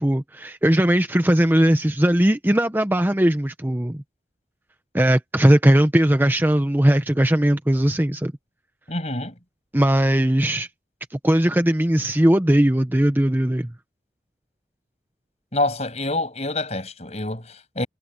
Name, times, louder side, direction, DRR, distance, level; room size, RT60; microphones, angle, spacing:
voice 1, 0.0-4.0 4.9-8.3 9.7-10.7 11.1-13.7, right 1 dB, 10° right, 0.7 m, -19 dB
voice 2, 8.9-9.3 15.5-17.9, left 2 dB, 35° left, 7.4 m, -26 dB
head